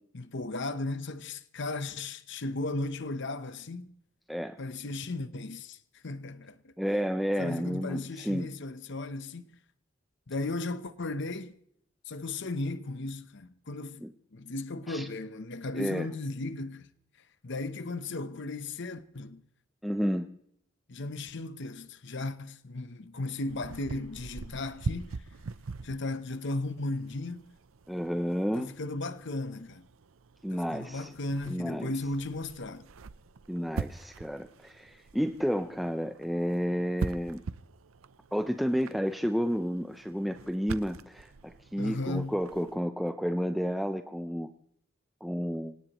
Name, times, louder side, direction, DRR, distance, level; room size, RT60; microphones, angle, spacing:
voice 1, 0.1-3.9 4.6-6.7 7.4-9.5 10.3-11.5 12.1-14.0 14.3-16.9 17.4-19.4 20.9-25.1 25.8-27.4 28.5-29.8 30.5-32.9 41.8-42.4, left 2 dB, 60° left, 0.9 m, -36 dB
voice 2, 6.8-8.5 14.0-14.1 14.9-15.1 15.7-16.1 19.8-20.3 27.9-28.7 30.4-31.1 31.5-31.9 33.5-37.4 38.3-44.5 45.2-45.7, equal, ahead, 0.6 m, -31 dB
sound 1, 23.5-42.8, right 4 dB, 85° right, 0.6 m, -43 dB
25.5 x 18.0 x 3.1 m
head